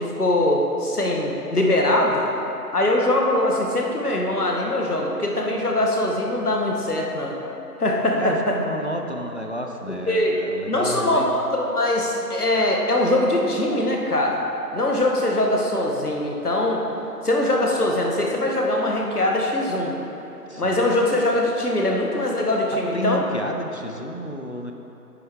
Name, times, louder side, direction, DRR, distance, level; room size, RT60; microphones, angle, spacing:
voice 1, 0.0-2.2 2.7-7.3 7.8-8.5 9.9-10.4 10.7-14.4 14.7-16.8 17.2-19.9 20.6-23.2, left 1 dB, 65° left, -1 dB, 1.5 m, -22 dB
voice 2, 8.2-11.3 20.5-20.8 22.9-24.7, equal, 45° left, 2 dB, 0.6 m, -31 dB
9.3 x 8.4 x 3.6 m, 3.0 s
figure-of-eight pair, 170°, 49 cm